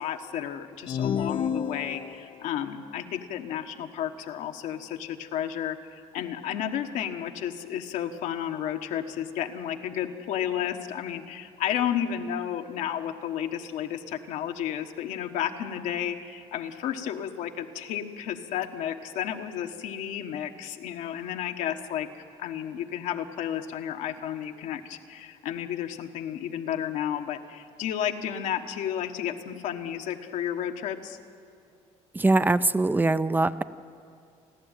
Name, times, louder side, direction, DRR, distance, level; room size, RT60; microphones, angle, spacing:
voice 1, 0.0-31.2, left 10 dB, 80° left, 5 dB, 1.3 m, -32 dB
sound 1, 0.9-2.5, left 7 dB, 45° left, 0.5 m, -30 dB
voice 2, 32.1-33.6, right 2 dB, 15° right, 13 dB, 0.5 m, -22 dB
29.5 x 11.5 x 9.1 m, 2.4 s
cardioid pair, 100°, 13 cm